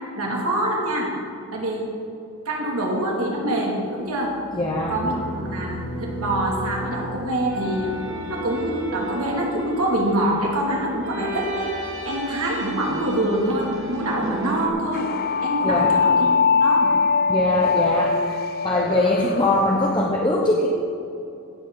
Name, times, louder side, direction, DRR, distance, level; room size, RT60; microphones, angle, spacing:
voice 1, 0.2-1.1 1.5-1.9 2.4-4.4 4.9-7.9 8.3-11.7 12.0-15.1 15.4-16.9, right 1 dB, 85° right, -3 dB, 2.8 m, -25 dB
voice 2, 4.5-4.9 15.6-15.9 17.3-18.4 18.6-20.7, left 1 dB, 20° left, -2 dB, 0.9 m, -22 dB
sound 1, 4.6-14.7, right 1 dB, 60° right, 1.6 m, -34 dB
sound 2, 14.9-20.1, left 5 dB, 45° left, 0.3 m, -22 dB
16.5 x 7.8 x 4.0 m, 2.7 s
head